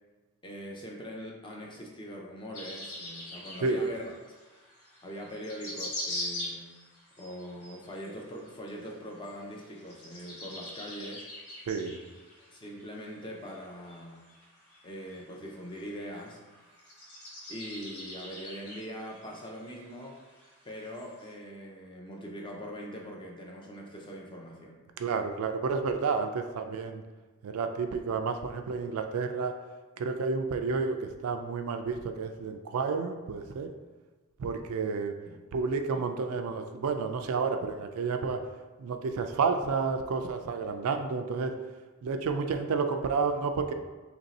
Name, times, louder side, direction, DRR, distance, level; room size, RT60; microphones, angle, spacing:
voice 1, 0.4-4.1 5.0-6.7 7.2-11.3 12.5-14.2 14.8-16.4 17.5-20.2 20.6-24.8 35.3-35.4 35.9-36.0, equal, 20° left, 0 dB, 0.5 m, -42 dB
sound 1, 2.5-21.3, left 1 dB, 80° left, 1.0 m, -43 dB
voice 2, 11.7-12.0 25.0-27.0 27.4-29.5 30.0-33.7 34.4-35.2 35.5-38.4 38.8-41.5 42.0-43.7, right 4 dB, 80° right, 6 dB, 0.3 m, -30 dB
2.9 x 2.7 x 4.0 m, 1.3 s
head